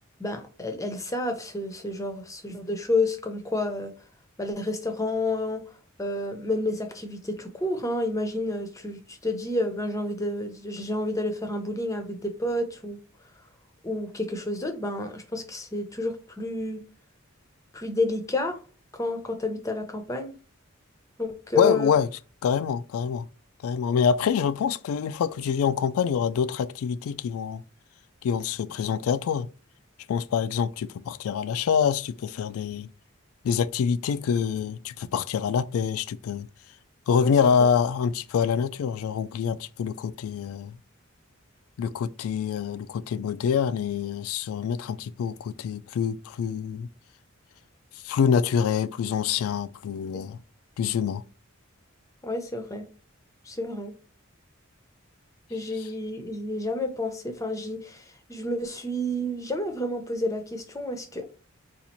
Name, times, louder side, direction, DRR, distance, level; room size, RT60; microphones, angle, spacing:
voice 1, 0.2-3.9 4.4-5.6 6.0-13.0 13.8-16.8 17.7-18.6 18.9-20.3 21.2-21.9 37.2-37.7 52.2-52.8 53.4-53.9 55.5-61.2, left 2 dB, 15° left, 0.6 m, -30 dB
voice 2, 21.6-22.1 22.4-23.3 23.6-27.6 28.2-29.5 30.1-32.9 33.4-36.5 37.1-40.8 41.8-46.9 48.0-50.4 50.8-51.2, left 7 dB, 80° left, 0.3 m, -26 dB
4.0 x 2.4 x 2.9 m
head